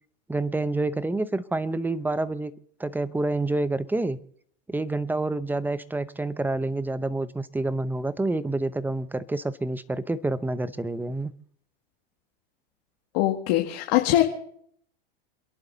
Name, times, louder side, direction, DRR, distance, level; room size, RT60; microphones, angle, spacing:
voice 1, 0.3-2.5 2.8-4.2 4.7-11.3, right 2 dB, 5° right, 0.7 m, -28 dB
voice 2, 13.1-14.2, left 14 dB, 60° left, 2.3 m, -22 dB
28.0 x 11.0 x 4.0 m
supercardioid pair, 125°, 31 cm